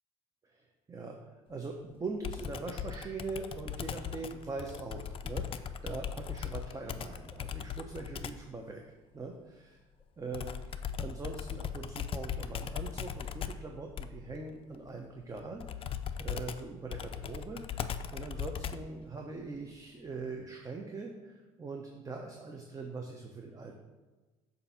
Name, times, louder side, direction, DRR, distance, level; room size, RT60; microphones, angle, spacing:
voice 1, 0.4-8.8 9.1-9.8 10.2-23.7, right 3 dB, 20° right, 2 dB, 0.8 m, -42 dB
Computer keyboard, 2.2-8.5 10.3-19.0, left 8 dB, 35° left, 0.4 m, -39 dB
6.8 x 2.7 x 5.6 m, 1.2 s
hypercardioid pair, 70°, 16 cm